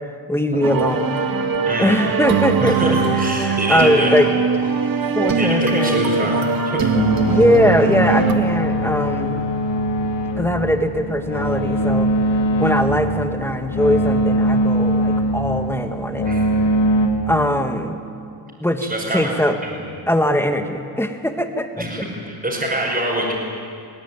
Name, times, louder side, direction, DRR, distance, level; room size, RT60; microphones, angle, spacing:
voice 1, 0.3-1.2 1.8-4.3 5.2-6.5 7.3-9.4 10.4-12.1 12.6-16.3 17.3-18.0 18.6-19.6 20.1-21.8, equal, 5° left, 6 dB, 1.9 m, -21 dB
sound 1, 0.6-8.3, right 4 dB, 50° right, 1.8 m, -21 dB
voice 2, 1.7-2.0 2.6-4.1 5.4-6.4 6.8-6.9 16.2-16.6 18.8-19.3 19.6-19.8 21.8-23.3, right 1 dB, 20° right, -5 dB, 5.7 m, -25 dB
sound 2, 6.9-17.1, right 1 dB, 75° left, 2.8 m, -21 dB
21.5 x 17.0 x 9.3 m, 2.4 s
cardioid pair, 80°, 44 cm